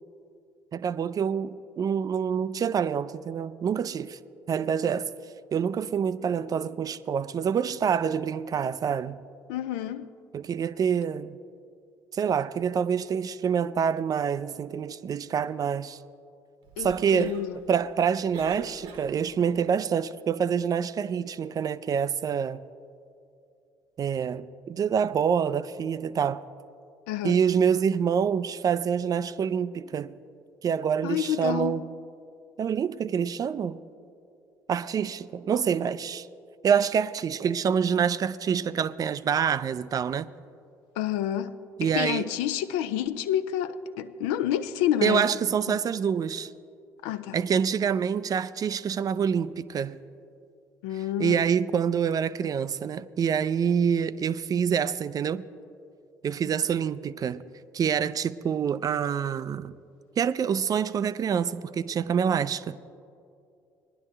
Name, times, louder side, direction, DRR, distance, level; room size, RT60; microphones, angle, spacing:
voice 1, 0.7-4.2 4.5-5.1 5.5-9.2 10.3-11.4 12.1-16.0 16.8-17.3 17.7-22.6 24.0-26.4 27.2-30.1 30.6-31.8 32.6-33.8 34.7-36.3 36.6-40.3 41.8-42.2 45.0-46.5 47.3-50.0 51.2-55.4 56.2-57.4 57.7-59.7 60.2-62.8, right 7 dB, 35° right, 0.4 m, -26 dB
voice 2, 9.5-10.1 16.8-17.6 27.1-27.4 31.0-31.8 41.0-45.3 45.7-45.8 47.0-47.4 50.8-51.4, left 11 dB, 70° left, 0.5 m, -29 dB
Cough, 16.6-19.5, right 5 dB, 65° right, 1.1 m, -45 dB
19.0 x 10.5 x 3.3 m
hypercardioid pair, 55°, 10 cm